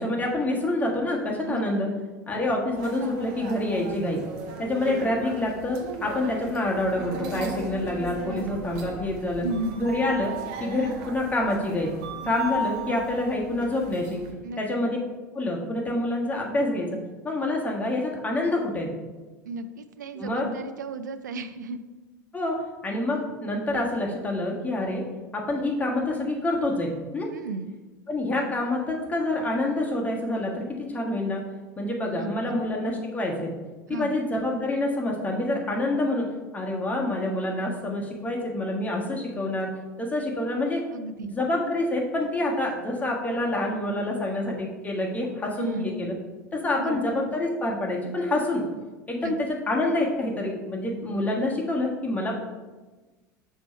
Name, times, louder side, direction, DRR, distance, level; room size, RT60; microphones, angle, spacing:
voice 1, 0.0-1.9 2.3-4.2 4.6-9.5 9.8-10.3 10.6-11.9 12.2-14.2 14.6-15.0 15.3-16.9 17.2-18.9 20.1-20.5 22.3-22.5 22.8-25.0 25.3-27.3 28.1-31.4 31.8-33.5 33.9-39.7 40.0-40.8 41.2-46.1 46.5-48.6 49.1-52.4, left 1 dB, 15° left, -1 dB, 1.3 m, -27 dB
voice 2, 1.5-1.8 8.2-8.5 9.4-9.8 12.2-12.4 14.4-14.6 19.4-21.8 27.3-27.8 32.1-32.5 33.9-34.2 40.9-41.3 45.6-45.9 46.8-47.0 49.2-49.3, right 2 dB, 70° right, 11 dB, 0.4 m, -34 dB
sound 1, 2.7-14.3, right 2 dB, 50° right, 0.9 m, -37 dB
5.9 x 4.6 x 4.3 m, 1.2 s
figure-of-eight pair, 75°, 10 cm